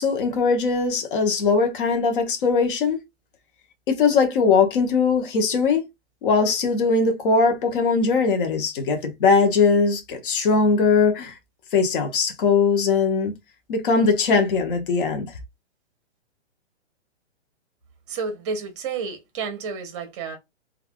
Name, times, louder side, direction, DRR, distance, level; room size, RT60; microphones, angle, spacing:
voice 1, 0.0-3.0 3.9-5.9 6.2-11.3 11.7-13.3 13.7-15.3, left 4 dB, 50° left, 0.9 m, -20 dB
voice 2, 18.1-20.4, right 5 dB, 25° right, 0.7 m, -30 dB
3.2 x 2.4 x 2.2 m
hypercardioid pair, 150°, 35 cm